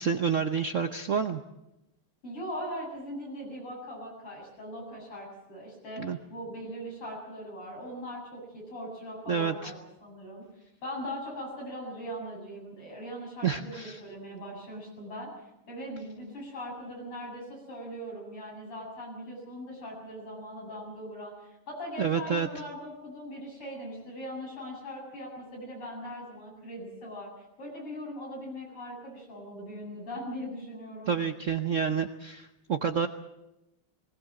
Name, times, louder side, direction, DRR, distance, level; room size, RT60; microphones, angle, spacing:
voice 1, 0.0-1.4 6.0-6.2 9.3-9.7 13.4-14.0 22.0-22.5 31.1-33.1, right 6 dB, 60° right, 8 dB, 0.8 m, -29 dB
voice 2, 2.2-10.5 10.8-15.3 15.7-31.1, equal, 85° left, -1 dB, 8.8 m, -40 dB
19.5 x 19.5 x 7.7 m, 0.93 s
omnidirectional pair, 2.4 m